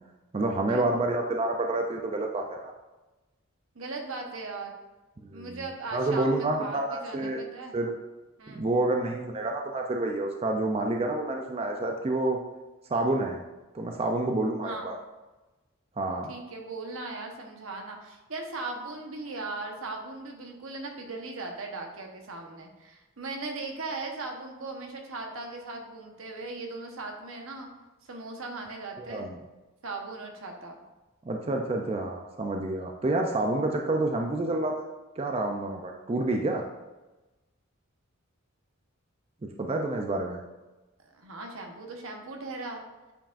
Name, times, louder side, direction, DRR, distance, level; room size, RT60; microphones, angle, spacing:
voice 1, 0.3-2.7 5.2-5.7 5.9-7.4 7.7-7.9 8.5-12.4 12.9-13.4 13.7-15.0 16.0-16.3 29.0-29.4 31.3-34.7 35.2-36.6 39.4-40.4, right 2 dB, 30° right, 2 dB, 0.4 m, -28 dB
voice 2, 3.7-4.8 5.3-7.8 8.4-8.6 14.6-14.9 16.3-27.7 28.0-29.3 29.8-30.8 41.0-42.8, right 3 dB, 75° right, 2 dB, 1.1 m, -38 dB
8.8 x 4.8 x 2.5 m, 1.1 s
head